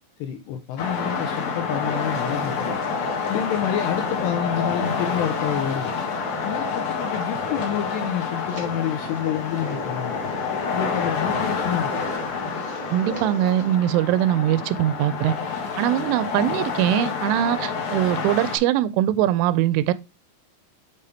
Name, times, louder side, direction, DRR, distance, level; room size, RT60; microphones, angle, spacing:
voice 1, 0.2-2.8 3.2-5.9 6.4-10.2 10.7-12.0, left 9 dB, 85° left, 2.4 m, -28 dB
sound 1, 0.8-18.6, left 5 dB, 60° left, 2.1 m, -28 dB
sound 2, 1.8-13.8, equal, 45° right, 1.2 m, -39 dB
voice 2, 12.9-15.3 15.8-19.9, right 12 dB, 90° right, 3.1 m, -22 dB
6.9 x 5.3 x 3.3 m
omnidirectional pair, 5.5 m